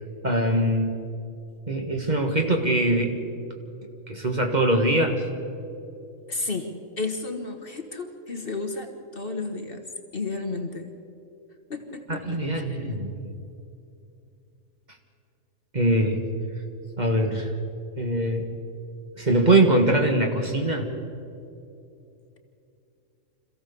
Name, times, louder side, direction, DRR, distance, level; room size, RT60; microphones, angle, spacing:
voice 1, 0.2-1.0 1.7-3.2 4.1-5.2 12.1-13.3 15.7-16.2 17.0-17.5 18.0-18.5 19.2-20.9, right 1 dB, 30° right, 3 dB, 1.7 m, -22 dB
voice 2, 6.3-9.8 10.1-10.9 11.7-12.8, left 3 dB, 40° left, 5 dB, 1.5 m, -32 dB
26.0 x 15.5 x 6.9 m, 2.8 s
omnidirectional pair, 1.4 m